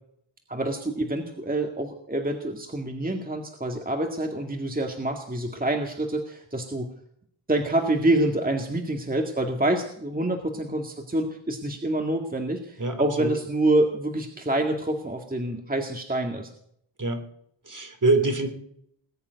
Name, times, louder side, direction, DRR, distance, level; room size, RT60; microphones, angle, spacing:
voice 1, 0.5-6.9 7.5-16.5, right 1 dB, 20° right, 3 dB, 1.9 m, -27 dB
voice 2, 12.8-13.3 17.0-17.2 17.7-18.5, right 2 dB, 40° right, 7 dB, 3.1 m, -24 dB
20.0 x 7.2 x 9.3 m, 0.70 s
wide cardioid pair, 90°, 46 cm